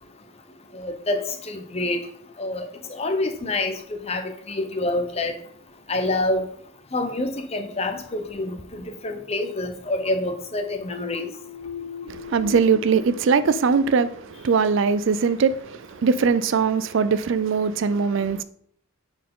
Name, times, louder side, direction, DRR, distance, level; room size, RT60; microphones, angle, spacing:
voice 1, 0.7-2.0 2.4-2.6 2.9-5.3 5.9-6.4 6.9-11.3, left 2 dB, 30° left, 0.7 m, -27 dB
sound 1, 10.9-14.5, left 4 dB, 85° left, 0.7 m, -38 dB
voice 2, 12.1-18.4, right 5 dB, 55° right, 0.4 m, -21 dB
9.2 x 4.5 x 3.7 m
head